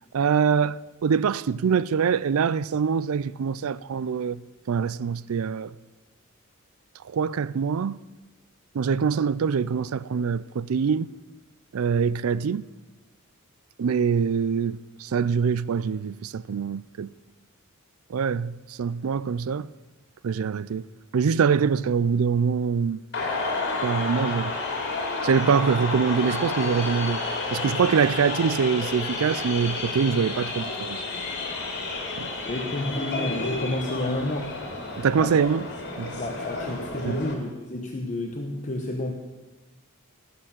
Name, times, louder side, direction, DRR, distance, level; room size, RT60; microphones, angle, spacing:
voice 1, 0.1-4.4 4.7-5.7 7.0-8.0 8.7-11.1 11.7-12.7 13.8-17.1 18.1-19.7 20.2-20.9 21.1-23.0 23.8-24.5 25.2-27.2 27.5-31.0 32.2-32.3 35.0-35.7 36.0-36.1 37.0-37.2, right 6 dB, 75° right, 0.4 m, -24 dB
sound 1, 23.1-37.3, left 3 dB, 55° left, 2.9 m, -31 dB
voice 2, 32.4-34.6 35.2-35.4 36.1-39.1, left 1 dB, 35° left, 1.0 m, -30 dB
18.5 x 6.9 x 7.4 m
head